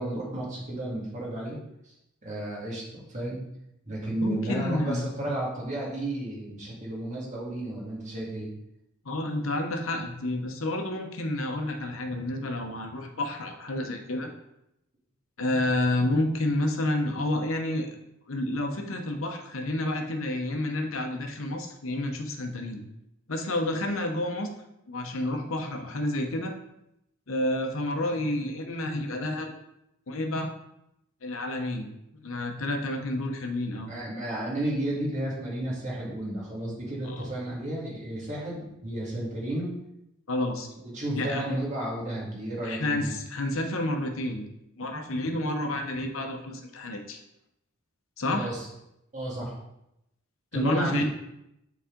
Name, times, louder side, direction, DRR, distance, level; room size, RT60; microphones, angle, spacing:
voice 1, 0.0-1.6 1.8-1.9 2.2-3.4 3.9-8.5 33.8-39.7 40.8-43.1 48.3-48.7 49.1-49.6 50.5-51.0, right 1 dB, 35° right, -5 dB, 2.0 m, -32 dB
voice 2, 4.2-5.3 9.0-14.3 15.4-18.0 18.3-22.8 23.3-24.5 24.9-26.5 27.3-29.5 30.1-30.5 31.2-33.9 37.0-37.3 40.3-40.7 41.2-41.5 42.6-44.5 44.8-47.2 48.2-48.5 50.5-51.0, left 1 dB, 65° left, 4 dB, 0.9 m, -30 dB
7.0 x 4.1 x 3.8 m, 0.83 s
head